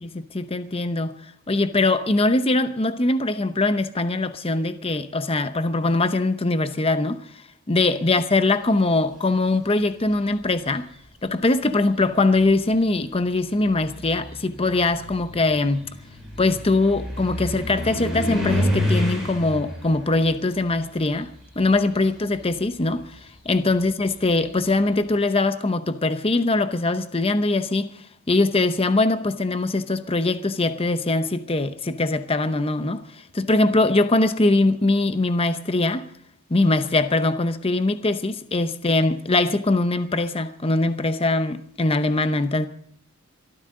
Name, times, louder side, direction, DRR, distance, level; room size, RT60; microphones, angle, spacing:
voice 1, 0.0-1.1 1.5-7.2 7.7-10.9 11.2-15.9 16.4-21.3 21.6-23.2 23.4-27.9 28.3-36.0 36.5-42.7, left 2 dB, 25° left, 0.8 m, -22 dB
sound 1, 9.8-10.3 11.3-11.4 12.0-21.9 22.2-24.8, left 1 dB, ahead, 7.5 m, -30 dB
23.5 x 14.0 x 3.8 m
head